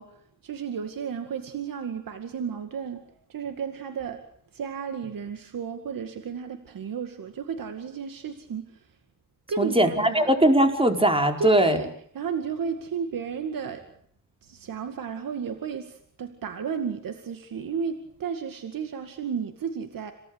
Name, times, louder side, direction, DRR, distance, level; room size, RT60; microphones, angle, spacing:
voice 1, 0.0-4.2 4.5-8.9 9.5-10.3 11.4-13.9 14.4-20.1, right 6 dB, 90° right, 7 dB, 2.2 m, -33 dB
voice 2, 9.6-11.8, right 1 dB, 15° right, 5 dB, 4.8 m, -20 dB
27.5 x 18.5 x 8.2 m, 0.65 s
cardioid pair, 75°, 33 cm